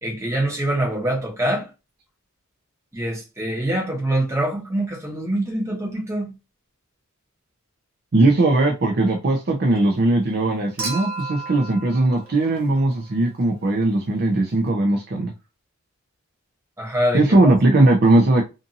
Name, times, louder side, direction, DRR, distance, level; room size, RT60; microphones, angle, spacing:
voice 1, 0.0-1.7 2.9-6.3 16.8-17.5, right 1 dB, 10° right, 1.0 m, -24 dB
voice 2, 8.1-15.3 17.1-18.4, right 2 dB, 45° right, 0.5 m, -19 dB
Human group actions / Chink clink / Liquid, 10.8-13.2 14.7-14.8, right 3 dB, 60° right, 1.1 m, -34 dB
2.6 x 2.6 x 2.6 m
head